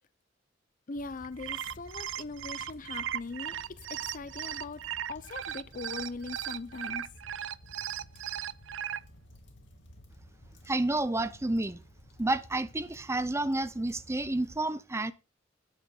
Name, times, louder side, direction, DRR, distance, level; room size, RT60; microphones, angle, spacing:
sound 1, 0.9-14.6, equal, 70° left, 2.7 m, -54 dB
voice 1, 0.9-7.1, left 3 dB, 45° left, 0.7 m, -41 dB
sound 2, 1.2-9.0, right 10 dB, 70° right, 0.4 m, -37 dB
voice 2, 10.7-11.8 12.2-15.1, right 2 dB, 15° right, 0.6 m, -30 dB
12.5 x 9.6 x 2.4 m
head